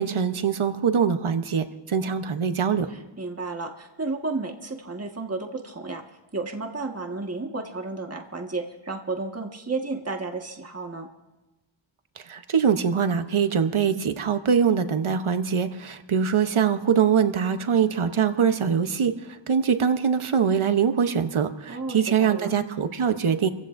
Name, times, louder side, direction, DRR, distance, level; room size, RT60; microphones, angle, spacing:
voice 1, 0.0-2.9 12.2-23.5, right 7 dB, 90° right, 9 dB, 1.0 m, -23 dB
voice 2, 2.9-6.0 6.3-11.1 21.7-22.5, right 3 dB, 30° right, 2 dB, 1.6 m, -32 dB
29.0 x 15.5 x 2.6 m, 1.1 s
wide cardioid pair, 55°, 48 cm